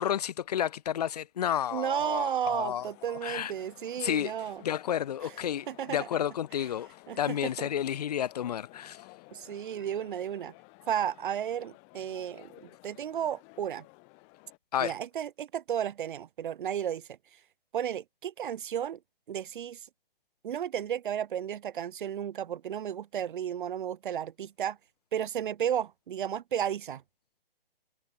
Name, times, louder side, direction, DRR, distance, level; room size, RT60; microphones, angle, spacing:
voice 1, 0.0-2.9 3.2-3.5 4.0-4.3 4.6-6.9 7.2-9.0 14.7-14.9, left 10 dB, 45° left, 0.5 m, -31 dB
voice 2, 1.7-4.6 5.2-5.3 5.7-6.1 7.1-7.7 9.3-10.5 10.9-13.8 14.8-17.1 17.7-19.0 19.3-19.8 20.4-24.8 25.1-27.0, right 9 dB, 55° right, 0.6 m, -33 dB
sound 1, 2.5-14.6, left 37 dB, 25° left, 3.4 m, -55 dB
hypercardioid pair, 150°, 30 cm